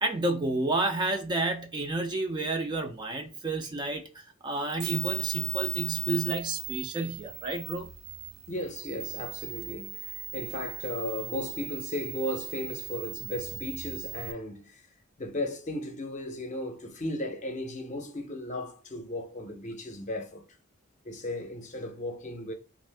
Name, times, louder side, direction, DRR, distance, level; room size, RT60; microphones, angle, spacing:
voice 1, 0.0-7.9, right 2 dB, 20° right, 0.4 m, -30 dB
sound 1, 4.8-14.3, right 13 dB, 85° right, 0.4 m, -37 dB
voice 2, 8.5-14.8 15.2-20.4 21.0-22.5, left 1 dB, 35° left, 0.6 m, -36 dB
2.6 x 2.5 x 3.3 m
head